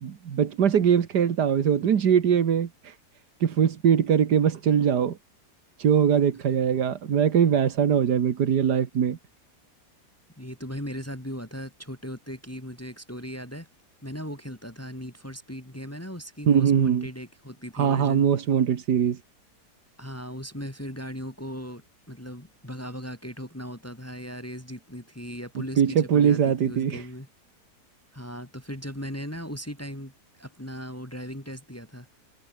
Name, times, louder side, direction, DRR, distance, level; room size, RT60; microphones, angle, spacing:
voice 1, 0.0-3.0 3.4-5.2 5.8-9.2 16.5-17.1 17.7-19.2 25.8-27.1, right 8 dB, 90° right, 2.0 m, -22 dB
voice 2, 10.4-13.7 14.0-18.3 20.0-27.3 28.1-30.1 30.4-32.1, equal, 10° left, 2.9 m, -38 dB
omnidirectional pair, 1.7 m